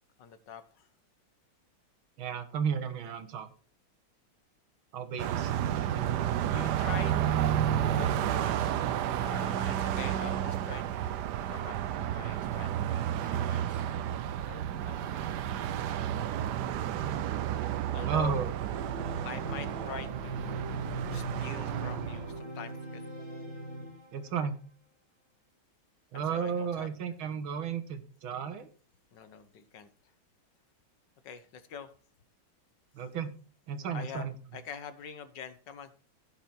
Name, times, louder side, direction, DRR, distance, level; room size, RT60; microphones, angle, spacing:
voice 1, 0.2-0.9 6.5-13.8 14.4-15.6 17.9-18.4 19.2-23.0 26.1-26.9 29.1-29.9 31.2-31.9 33.9-35.9, left 7 dB, 65° left, 12 dB, 1.6 m, -45 dB
voice 2, 2.2-3.5 4.9-6.2 18.1-18.5 24.1-24.6 26.1-28.7 33.0-33.3 33.7-34.3, right 7 dB, 85° right, 10 dB, 2.1 m, -33 dB
Car passing by, 5.2-22.4, right 10 dB, 70° right, 1.1 m, -31 dB
Organ, 18.7-24.4, right 2 dB, 45° right, 6.3 m, -40 dB
16.5 x 6.1 x 4.5 m, 0.42 s
omnidirectional pair, 2.2 m